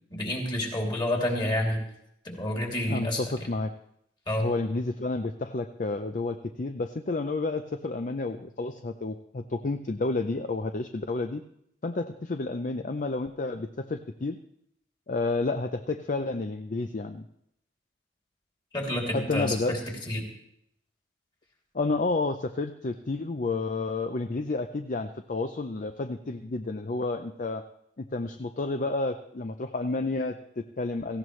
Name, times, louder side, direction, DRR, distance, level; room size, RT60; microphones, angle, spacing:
voice 1, 0.1-1.8 2.2-3.2 4.3-4.5 18.7-19.8 20.1-20.3, left 1 dB, 25° left, 0 dB, 2.8 m, -29 dB
voice 2, 2.9-3.7 4.4-11.4 11.8-14.4 15.1-17.3 19.1-19.8 21.7-27.6 28.0-31.2, left 3 dB, 45° left, 7 dB, 0.5 m, -30 dB
17.5 x 15.5 x 3.2 m, 0.74 s
head